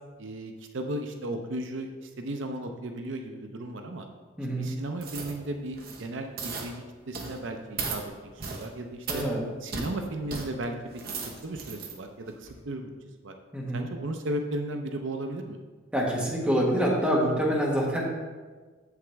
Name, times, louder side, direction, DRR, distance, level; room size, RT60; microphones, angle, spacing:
voice 1, 0.2-4.1 4.6-8.0 8.3-9.2 9.6-12.9 13.2-13.3 13.7-15.6, right 1 dB, 65° right, 5 dB, 0.6 m, -35 dB
voice 2, 4.4-4.7 9.1-9.4 13.5-13.8 15.9-18.0, equal, 5° right, -4 dB, 1.4 m, -26 dB
sound 1, 5.0-5.4 5.7-6.0 6.4-6.7 7.1-7.4 7.8-8.0 8.4-8.7 9.1-9.3 9.7-9.9 10.3-10.5 10.9-11.9 12.4-12.5, right 4 dB, 50° right, 1.0 m, -36 dB
8.1 x 7.1 x 3.4 m, 1.4 s
head